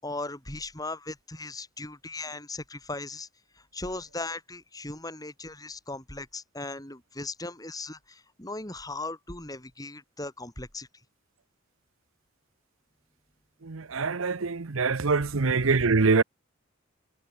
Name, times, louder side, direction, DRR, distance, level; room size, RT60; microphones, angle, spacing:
voice 1, 0.0-3.3 3.6-10.9 15.1-15.2, left 2 dB, 20° left, 5.3 m, -38 dB
voice 2, 13.7-16.2, right 4 dB, 80° right, 0.9 m, -24 dB
head